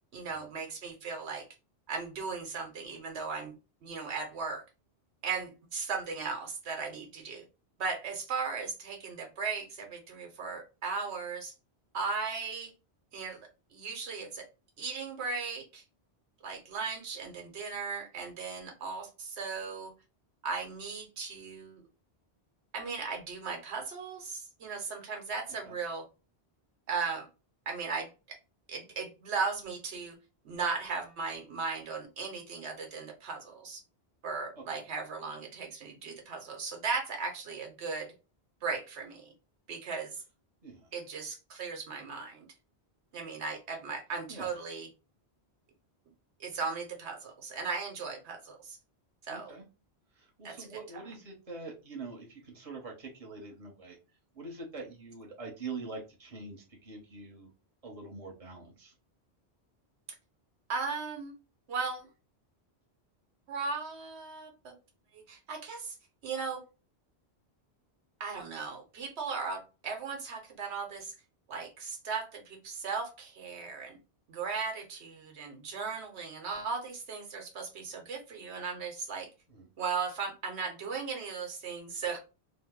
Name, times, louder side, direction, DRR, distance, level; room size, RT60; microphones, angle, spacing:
voice 1, 0.1-1.5 1.9-3.5 3.8-4.6 5.2-7.4 7.8-11.5 11.9-12.7 13.1-13.4 13.7-14.4 14.8-15.8 16.4-19.9 20.4-21.8 22.7-26.0 26.9-27.3 27.7-28.4 28.7-30.2 30.4-33.8 34.2-38.1 38.6-39.3 39.7-40.2 40.9-42.5 43.1-44.9 46.4-48.8 49.3-49.5 50.4-50.5 60.7-61.3 61.7-62.1 63.5-64.7 65.1-66.0 66.2-66.6 68.2-71.1 71.5-74.0 74.3-79.3 79.8-82.2, right 5 dB, 90° right, 3 dB, 1.1 m, -37 dB
voice 2, 49.3-49.6 50.1-54.0 54.3-57.5 57.8-58.9 79.5-79.7, right 3 dB, 35° right, 0 dB, 1.0 m, -44 dB
2.6 x 2.0 x 3.5 m, 0.30 s
omnidirectional pair, 1.1 m